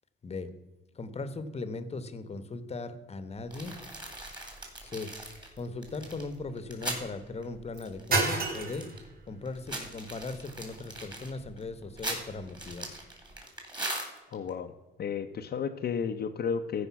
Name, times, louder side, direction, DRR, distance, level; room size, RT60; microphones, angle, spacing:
voice 1, 0.9-3.8 4.8-5.1 5.6-8.9 9.3-13.0, left 3 dB, 30° left, 12 dB, 1.0 m, -38 dB
sound 1, 3.3-13.4, right 3 dB, 50° right, 2.3 m, -38 dB
sound 2, 3.5-7.1 7.4-7.5 7.8-9.1 9.5-14.5, right 1 dB, 20° right, 3.3 m, -39 dB
voice 2, 14.3-14.7 15.0-16.9, left 6 dB, 50° left, 4 dB, 0.7 m, -32 dB
14.5 x 5.2 x 5.8 m, 1.2 s
cardioid pair, 90°, 20 cm